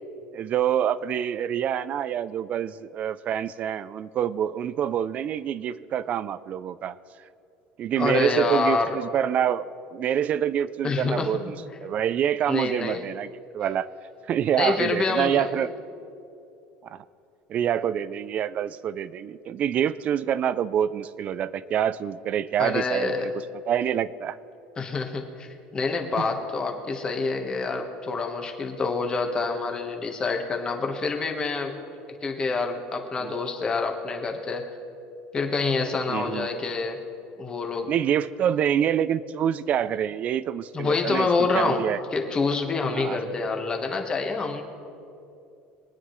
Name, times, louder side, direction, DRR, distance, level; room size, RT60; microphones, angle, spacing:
voice 1, 0.3-7.0 7.8-11.6 11.8-13.3 13.5-13.9 14.3-15.7 16.9-17.0 17.5-23.3 23.7-24.4 26.2-26.3 33.2-33.3 36.1-36.5 37.9-41.3 41.5-42.0 42.9-43.2, right 9 dB, 35° right, 17 dB, 0.4 m, -26 dB
voice 2, 8.0-9.0 10.8-11.6 12.5-13.0 14.6-15.6 22.6-23.3 24.8-25.5 25.7-31.8 32.2-34.7 35.3-37.0 37.4-37.9 40.7-44.6, left 4 dB, 20° left, 3 dB, 1.3 m, -27 dB
23.0 x 9.6 x 3.2 m, 2.6 s
cardioid pair, 150°, 4 cm